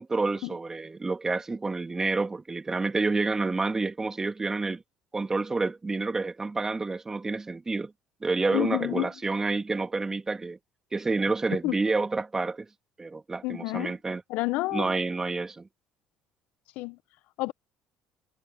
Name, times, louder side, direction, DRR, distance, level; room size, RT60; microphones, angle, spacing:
voice 1, 0.0-4.8 5.1-7.9 8.2-10.6 10.9-12.7 13.0-14.2 14.7-15.7, right 3 dB, 20° right, 2.3 m, -29 dB
voice 2, 8.5-9.1 11.6-11.7 13.4-13.9 14.3-14.9 16.8-17.0 17.4-17.5, left 20 dB, 75° left, 0.6 m, -29 dB
supercardioid pair, 85°, 3 cm